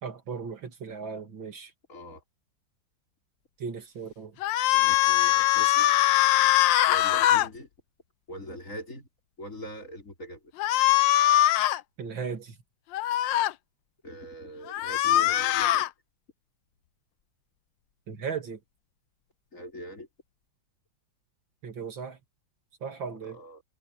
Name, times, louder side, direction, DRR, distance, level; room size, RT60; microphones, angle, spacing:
voice 1, 0.0-1.7 3.6-4.4 12.0-12.6 18.1-18.6 21.6-22.2 22.8-23.4, right 6 dB, 70° right, 3.0 m, -36 dB
voice 2, 1.9-2.2 4.7-5.9 6.9-7.7 8.3-9.1 9.4-10.4 10.7-10.9 14.0-15.9 19.5-20.1 23.2-23.6, equal, 40° left, 5.6 m, -42 dB
sound 1, 4.4-7.5 10.6-11.8 12.9-13.5 14.7-15.9, left 14 dB, 75° left, 1.3 m, -22 dB
omnidirectional pair, 2.2 m